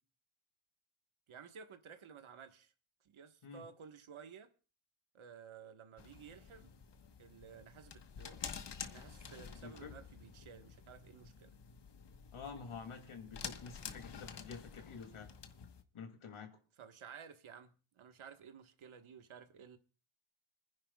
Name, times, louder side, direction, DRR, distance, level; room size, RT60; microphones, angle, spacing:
voice 1, 1.3-2.7 3.0-4.5 5.1-6.7 7.2-8.5 8.9-11.5 16.8-19.8, right 7 dB, 80° right, 1.5 m, -54 dB
sound 1, 6.0-15.8, left 7 dB, 60° left, 1.3 m, -50 dB
voice 2, 12.3-15.3 15.9-16.6, left 5 dB, 85° left, 2.8 m, -49 dB
29.5 x 10.5 x 2.3 m
wide cardioid pair, 175°, 48 cm